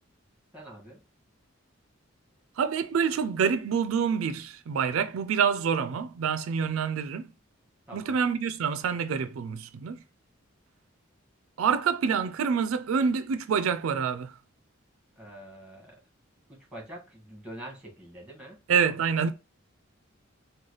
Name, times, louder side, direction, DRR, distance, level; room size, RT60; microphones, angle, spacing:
voice 1, 0.5-1.0 7.9-8.2 15.1-16.0 16.5-18.6, right 1 dB, 5° right, 1.4 m, -45 dB
voice 2, 2.6-7.3 7.9-10.0 11.6-14.4 18.7-19.3, right 6 dB, 85° right, 0.4 m, -27 dB
3.8 x 2.2 x 3.1 m
head